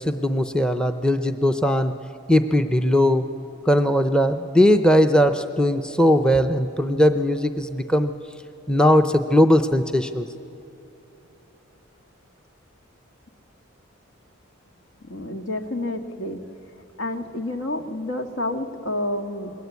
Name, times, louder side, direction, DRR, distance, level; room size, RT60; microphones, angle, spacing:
voice 1, 0.0-2.0 2.3-3.3 3.7-8.1 8.7-10.3, equal, 5° left, 9 dB, 0.6 m, -19 dB
voice 2, 15.0-16.4 17.0-19.5, left 1 dB, 80° left, 6 dB, 1.8 m, -29 dB
27.5 x 21.5 x 8.3 m, 3.0 s
head